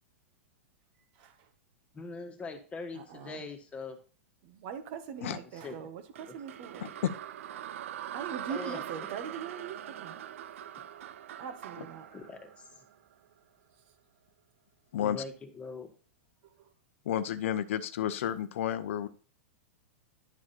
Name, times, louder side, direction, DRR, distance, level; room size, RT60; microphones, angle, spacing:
voice 1, 1.1-1.5 2.9-3.4 4.4-7.0 8.1-10.2 11.4-12.1 16.4-16.7, right 7 dB, 55° right, 1.5 m, -42 dB
voice 2, 1.9-4.0 5.6-5.9 8.5-8.8 12.1-12.8 15.0-15.9, left 3 dB, 15° left, 1.7 m, -42 dB
sound 1, 6.2-13.3, right 11 dB, 75° right, 0.6 m, -42 dB
voice 3, 14.9-15.2 17.1-19.1, left 10 dB, 70° left, 0.7 m, -31 dB
11.0 x 4.9 x 4.4 m
hypercardioid pair, 125°, 7 cm